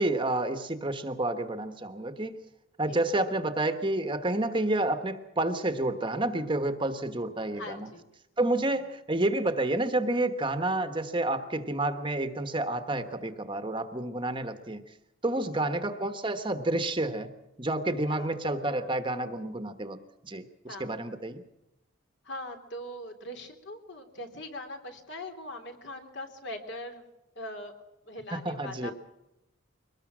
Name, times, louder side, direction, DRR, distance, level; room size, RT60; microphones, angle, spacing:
voice 1, 0.0-2.4 2.8-7.9 8.4-14.8 15.2-17.3 17.6-20.0 20.2-20.4 20.8-21.4 28.3-28.9, right 2 dB, 25° right, 8 dB, 1.3 m, -29 dB
voice 2, 7.5-8.0 8.7-8.8 15.4-15.7 18.0-18.3 20.7-21.1 22.2-27.1 27.3-27.7 28.0-28.9, left 1 dB, 55° left, 5 dB, 3.3 m, -41 dB
23.0 x 19.5 x 6.3 m, 0.94 s
head